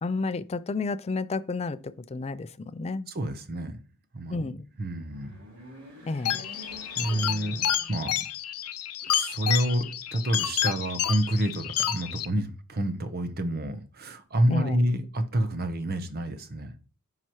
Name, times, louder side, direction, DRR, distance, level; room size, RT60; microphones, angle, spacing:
voice 1, 0.0-3.1 4.3-4.7 6.0-6.5 14.5-14.8, left 3 dB, 30° left, 0.4 m, -31 dB
voice 2, 3.1-3.8 4.1-4.5 4.8-5.4 7.0-8.3 9.0-16.7, right 1 dB, 45° right, 0.9 m, -28 dB
sound 1, 4.9-8.5 8.9-9.0 10.1-10.9, equal, 65° right, 3.9 m, -47 dB
sound 2, 6.3-12.3, left 11 dB, 85° left, 0.7 m, -30 dB
9.8 x 5.8 x 3.1 m
head